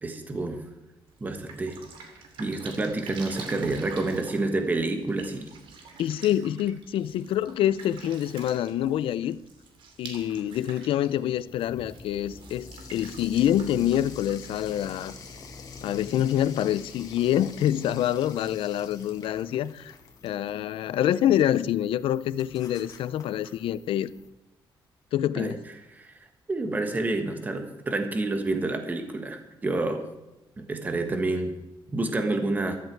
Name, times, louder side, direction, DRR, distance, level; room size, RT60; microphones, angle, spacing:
voice 1, 0.0-0.6 1.2-1.8 2.4-5.5 25.3-25.6 25.9-26.1 26.5-30.0 30.6-31.5 31.9-32.8, right 2 dB, 20° right, 1.4 m, -28 dB
Drip, 1.1-15.2, right 4 dB, 70° right, 2.8 m, -47 dB
voice 2, 6.0-9.4 10.0-15.1 15.8-19.9 20.2-24.1 25.1-25.6, left 11 dB, 80° left, 0.6 m, -26 dB
sound 1, 11.5-24.3, left 4 dB, 45° left, 1.9 m, -46 dB
14.5 x 13.5 x 4.7 m
cardioid pair, 175°, 9 cm